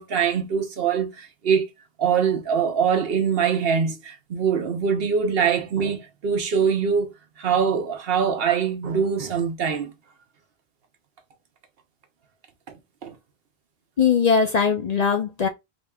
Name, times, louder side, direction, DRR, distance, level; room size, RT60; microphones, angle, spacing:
voice 1, 0.0-1.7 2.0-7.1 7.4-9.9 13.0-13.2, right 7 dB, 70° right, 1.0 m, -23 dB
voice 2, 14.0-15.5, left 6 dB, 50° left, 0.5 m, -20 dB
5.0 x 2.9 x 2.3 m
omnidirectional pair, 1.1 m